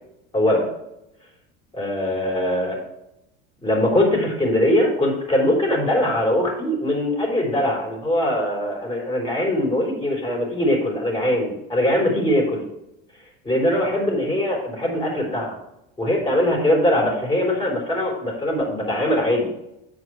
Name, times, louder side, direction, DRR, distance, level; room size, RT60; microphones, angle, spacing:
voice 1, 0.3-0.7 1.7-2.8 3.6-12.7 13.4-15.6 16.0-19.5, left 1 dB, 15° left, -1 dB, 3.5 m, -21 dB
8.0 x 4.9 x 6.1 m, 0.86 s
supercardioid pair, 115°, 30 cm